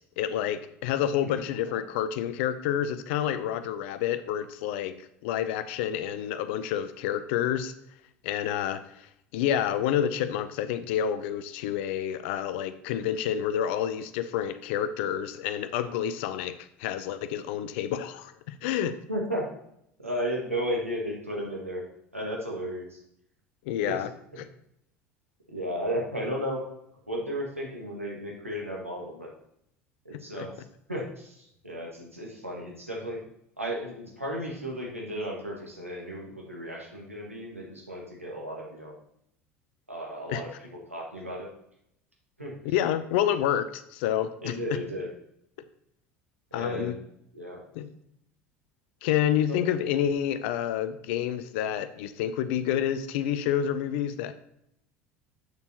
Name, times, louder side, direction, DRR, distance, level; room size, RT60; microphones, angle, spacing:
voice 1, 0.2-4.9 5.2-7.7 8.2-8.8 9.3-16.5 16.8-19.0 23.7-24.1 24.4-24.5 30.4-30.5 40.3-40.4 42.6-44.6 46.5-46.9 47.7-47.9 49.0-54.3, left 10 dB, 60° left, 12 dB, 0.6 m, -28 dB
voice 2, 1.2-1.8 19.1-19.4 20.0-21.8 22.1-23.0 23.8-24.0 25.5-26.6 27.1-29.3 30.1-30.5 30.9-33.2 33.6-38.9 39.9-40.5 40.9-41.5 42.4-42.5 44.4-45.1 46.5-47.0 47.3-47.6 49.5-49.6, equal, 90° right, -2 dB, 1.6 m, -34 dB
7.9 x 6.8 x 2.9 m, 0.75 s
figure-of-eight pair, 70°, 7 cm